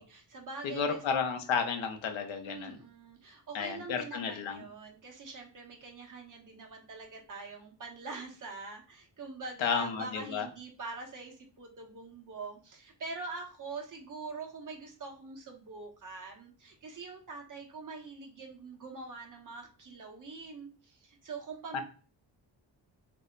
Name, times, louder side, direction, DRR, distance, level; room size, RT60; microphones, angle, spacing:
voice 1, 0.0-1.0 2.4-21.8, right 3 dB, 45° right, 1 dB, 0.9 m, -44 dB
voice 2, 0.6-2.8 3.5-4.6 9.6-10.5 21.7-21.8, left 6 dB, 90° left, 6 dB, 0.7 m, -32 dB
2.7 x 2.1 x 3.7 m, 0.39 s
wide cardioid pair, 125°, 45 cm